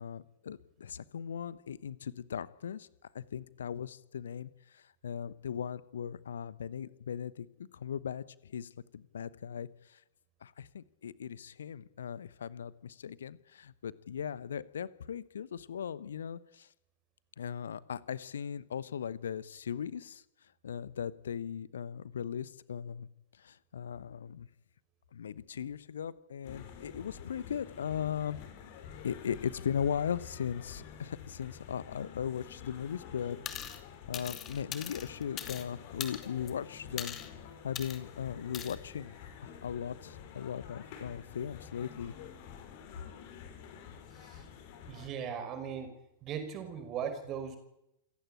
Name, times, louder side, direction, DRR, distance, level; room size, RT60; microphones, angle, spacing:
voice 1, 0.0-2.9 3.1-10.0 10.4-16.7 17.4-20.2 20.6-23.1 23.4-24.5 25.1-28.4 29.0-33.4 34.1-37.2 37.6-42.1, left 8 dB, 65° left, 19 dB, 1.0 m, -38 dB
sound 1, 26.4-45.1, left 8 dB, 50° left, 4.5 m, -49 dB
sound 2, 33.5-33.8 34.1-35.7 36.0-36.5 37.0-37.3 37.8-38.0 38.5-38.8, left 9 dB, 30° left, 2.6 m, -40 dB
voice 2, 44.9-45.9 46.2-47.6, right 7 dB, 35° right, 9 dB, 5.2 m, -38 dB
28.0 x 16.0 x 9.0 m, 0.85 s
figure-of-eight pair, 90°, 0 cm